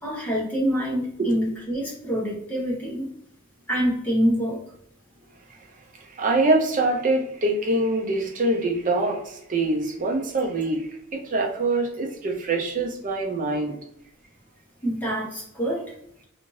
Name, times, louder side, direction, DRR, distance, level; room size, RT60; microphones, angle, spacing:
voice 1, 0.0-3.1 3.7-4.6 14.8-15.8, equal, 10° left, -5 dB, 0.9 m, -26 dB
voice 2, 6.1-13.8, right 2 dB, 40° right, 2 dB, 0.5 m, -24 dB
2.5 x 2.5 x 3.1 m, 0.72 s
head